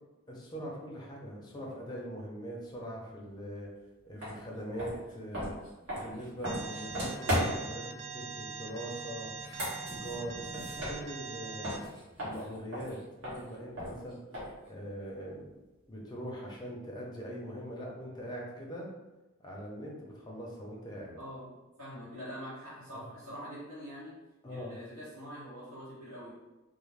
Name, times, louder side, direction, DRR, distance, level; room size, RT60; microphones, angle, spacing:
voice 1, 0.3-3.7 4.0-5.5 5.9-7.8 8.1-9.3 9.9-11.9 12.2-14.2 14.7-15.5 15.9-18.9 19.4-21.1 22.9-23.1 24.4-24.8, equal, 20° left, -3 dB, 0.5 m, -42 dB
sound 1, 4.2-4.3 4.7-7.8 9.3-11.4 11.6-14.7, equal, 70° right, 1.2 m, -36 dB
Alarm, 6.4-11.8, right 5 dB, 50° right, 0.3 m, -42 dB
voice 2, 21.2-21.5 21.8-24.1 24.5-26.3, equal, 90° right, -9 dB, 0.9 m, -44 dB
2.4 x 2.0 x 3.1 m, 1.1 s
head